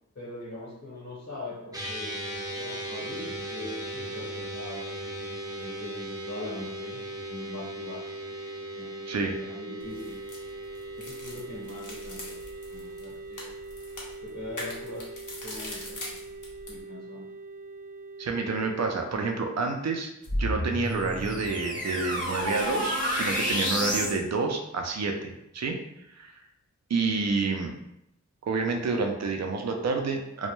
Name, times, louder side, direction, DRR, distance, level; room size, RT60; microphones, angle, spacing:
voice 1, 0.1-4.9 5.6-7.0 7.3-8.0 8.7-9.0 9.3-10.2 11.0-12.4 12.7-13.5 14.2-15.1 15.4-16.2 16.7-17.3, left 2 dB, 60° left, -5 dB, 1.0 m, -41 dB
sound 1, 1.7-19.0, right 1 dB, 10° right, 0.5 m, -39 dB
voice 2, 9.1-9.4 18.2-20.1 20.4-25.8 26.1-26.4 26.9-27.7 28.5-30.5, right 4 dB, 60° right, 3 dB, 0.5 m, -29 dB
sound 2, 9.8-16.8, left 1 dB, 75° left, 0.8 m, -43 dB
sound 3, 20.2-24.2, equal, 25° left, 0.7 m, -29 dB
2.2 x 2.1 x 3.0 m, 0.83 s
cardioid pair, 45°, 30 cm